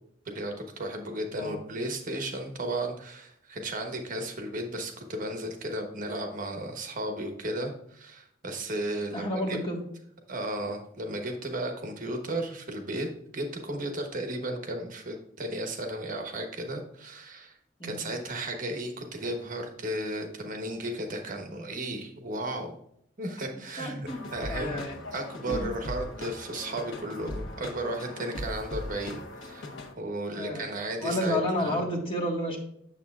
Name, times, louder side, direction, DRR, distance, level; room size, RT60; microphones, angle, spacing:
voice 1, 0.2-9.6 10.3-13.1 13.3-17.6 17.8-22.8 23.2-24.8 25.1-31.8, right 1 dB, 45° right, 4 dB, 1.1 m, -34 dB
voice 2, 9.1-9.8 17.8-18.0 23.8-24.9 25.4-25.7 30.3-30.7 31.0-32.6, left 1 dB, 30° left, 0 dB, 1.5 m, -31 dB
sound 1, 24.1-29.9, left 1 dB, 80° left, 1.2 m, -39 dB
8.5 x 7.2 x 2.4 m, 0.70 s
head